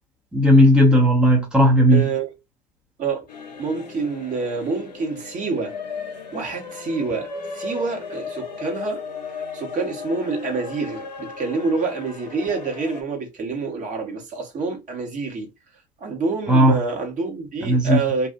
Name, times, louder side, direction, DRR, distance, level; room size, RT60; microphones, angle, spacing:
voice 1, 0.3-2.1 16.5-16.8 17.6-18.0, equal, 5° right, 0.8 m, -15 dB
voice 2, 1.9-2.3 3.0-3.3 3.6-5.7 6.3-9.0 9.5-15.5 16.0-18.3, right 4 dB, 35° right, 1.3 m, -27 dB
sound 1, 3.3-13.0, left 5 dB, 85° left, 0.6 m, -36 dB
2.6 x 2.4 x 2.3 m
figure-of-eight pair, 75°, 21 cm